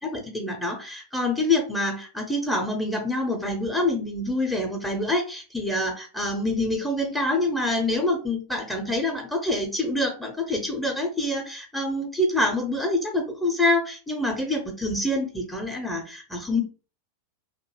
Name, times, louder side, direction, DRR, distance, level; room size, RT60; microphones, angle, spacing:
voice 1, 0.0-16.6, left 1 dB, 5° left, 2 dB, 0.5 m, -26 dB
2.5 x 2.2 x 3.0 m, 0.35 s
figure-of-eight pair, 90°, 0 cm